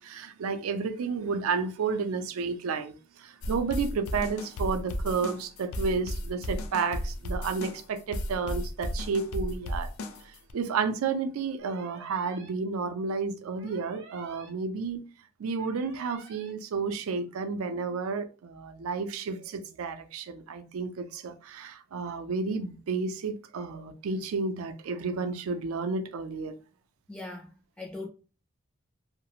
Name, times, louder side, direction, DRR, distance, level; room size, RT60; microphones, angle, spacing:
voice 1, 0.0-9.9 10.5-15.0 15.4-26.5, right 4 dB, 90° right, 0.4 m, -31 dB
sound 1, 3.4-10.5, left 1 dB, 80° left, 0.4 m, -34 dB
sound 2, 11.6-12.5 13.6-14.5 15.6-16.5, right 4 dB, 60° right, 0.7 m, -50 dB
voice 2, 27.1-28.1, left 2 dB, 5° left, 0.4 m, -40 dB
2.3 x 2.0 x 2.9 m
head